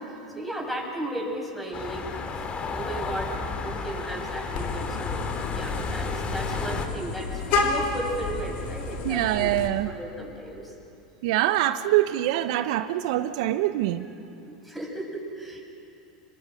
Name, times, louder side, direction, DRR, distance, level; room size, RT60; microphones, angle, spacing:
voice 1, 0.3-2.0 2.7-3.3 3.6-9.5 9.8-10.7 14.0-15.6, right 1 dB, ahead, 0 dB, 7.0 m, -35 dB
sound 1, 1.7-6.9, left 4 dB, 30° left, 2.7 m, -32 dB
Vehicle horn car horn honking, 4.5-9.7, left 3 dB, 55° left, 3.4 m, -30 dB
voice 2, 9.0-9.9 11.2-14.1, right 14 dB, 65° right, 10 dB, 0.9 m, -24 dB
29.0 x 22.0 x 6.6 m, 2.8 s
hypercardioid pair, 90°, 4 cm